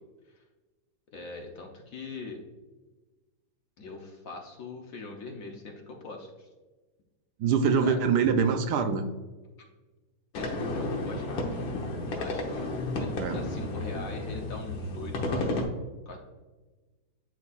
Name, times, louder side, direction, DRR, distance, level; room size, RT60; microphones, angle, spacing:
voice 1, 1.1-2.4 3.8-6.5 7.8-8.0 10.4-11.5 12.1-15.5 16.1-16.2, left 3 dB, 55° left, 2 dB, 1.0 m, -42 dB
voice 2, 7.4-9.1 13.2-13.4, right 6 dB, 70° right, 7 dB, 1.0 m, -24 dB
sound 1, 10.3-15.6, left 2 dB, 90° left, 1.9 m, -32 dB
10.5 x 4.2 x 2.4 m, 1.2 s
omnidirectional pair, 2.1 m